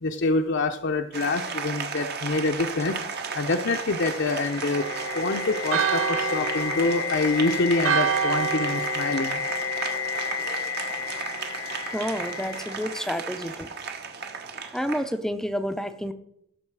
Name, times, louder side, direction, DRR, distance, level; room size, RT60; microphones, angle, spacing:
voice 1, 0.0-4.8 5.1-9.4, left 3 dB, 60° left, 5 dB, 0.7 m, -26 dB
Applause, 1.1-15.1, right 5 dB, 55° right, 1.3 m, -35 dB
sound 1, 3.8-13.6, left 8 dB, 85° left, 1.3 m, -33 dB
Church bell, 4.7-10.4, right 8 dB, 80° right, 0.6 m, -29 dB
voice 2, 11.9-13.7 14.7-16.1, equal, ahead, 10 dB, 0.6 m, -29 dB
16.5 x 7.0 x 4.8 m, 0.78 s
head